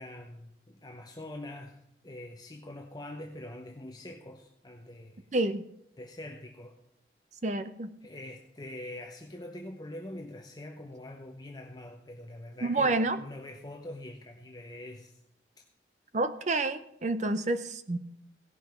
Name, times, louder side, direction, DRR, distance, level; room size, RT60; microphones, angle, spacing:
voice 1, 0.0-5.4 6.0-6.8 8.0-15.2, left 1 dB, 25° left, 2 dB, 0.8 m, -44 dB
voice 2, 5.3-5.6 7.4-7.9 12.6-13.2 16.1-18.0, right 2 dB, 40° right, 12 dB, 0.6 m, -28 dB
16.5 x 5.8 x 5.7 m, 0.77 s
head